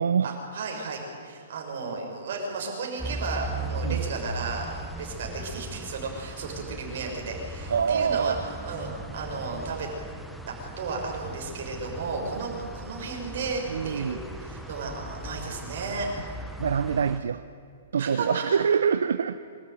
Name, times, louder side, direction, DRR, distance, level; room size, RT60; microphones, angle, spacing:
voice 1, 0.2-9.9 10.5-16.1 18.0-18.5, right 4 dB, 60° right, 0 dB, 6.2 m, -34 dB
sound 1, 3.0-17.2, right 1 dB, ahead, 0.9 m, -38 dB
voice 2, 7.7-8.4 13.7-14.2 16.6-17.4 17.9-19.4, right 7 dB, 90° right, 11 dB, 0.7 m, -25 dB
24.5 x 13.5 x 9.4 m, 2.4 s
hypercardioid pair, 160°, 0 cm